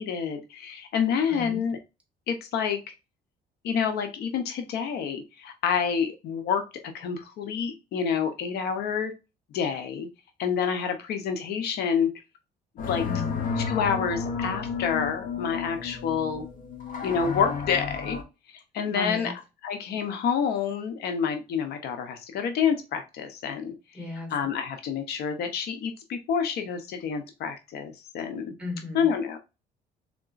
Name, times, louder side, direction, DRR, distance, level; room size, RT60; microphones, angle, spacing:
voice 1, 0.0-1.8 2.3-2.9 3.6-6.6 6.9-9.1 9.5-10.1 10.4-12.1 12.9-13.1 13.7-16.4 17.0-18.2 18.7-19.3 19.6-23.7 24.3-28.5 28.9-29.4, left 7 dB, 70° left, 7 dB, 0.8 m, -28 dB
sound 1, 12.8-18.2, left 6 dB, 55° left, 0.9 m, -32 dB
voice 2, 13.0-13.4 18.8-19.3 23.9-24.3 28.6-29.1, left 2 dB, 5° right, 1 dB, 1.8 m, -35 dB
3.7 x 3.6 x 2.5 m, 0.27 s
cardioid pair, 110°, 17 cm